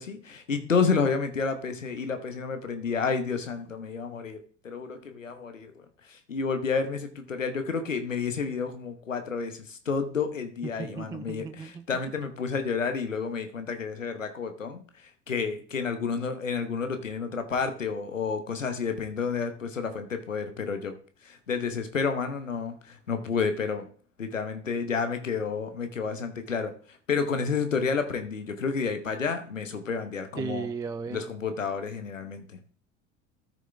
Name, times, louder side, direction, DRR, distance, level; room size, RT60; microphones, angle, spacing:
voice 1, 0.0-5.7 6.1-14.8 15.3-20.9 21.2-23.9 24.2-26.7 27.1-30.7 31.1-32.6, left 5 dB, 90° left, 8 dB, 1.1 m, -30 dB
voice 2, 10.8-11.9 30.4-31.3, right 5 dB, 10° right, 11 dB, 0.3 m, -35 dB
13.0 x 6.2 x 3.4 m, 0.43 s
figure-of-eight pair, 70°, 37 cm